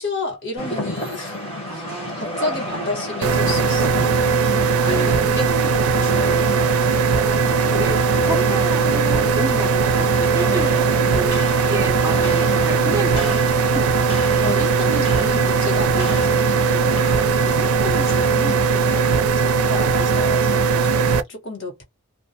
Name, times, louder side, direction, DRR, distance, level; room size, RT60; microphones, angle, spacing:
voice 1, 0.0-1.4 1.7-1.8 2.2-7.1 14.4-17.0 17.3-21.8, left 2 dB, 55° left, 1.1 m, -31 dB
Rain, 0.6-19.2, equal, 25° left, 0.8 m, -31 dB
voice 2, 1.7-3.0 4.8-5.4 7.2-13.4 13.7-13.8 15.9-16.2, right 1 dB, 15° right, 0.5 m, -31 dB
sound 1, 3.2-21.2, right 5 dB, 85° right, 0.4 m, -19 dB
2.2 x 2.0 x 2.7 m
head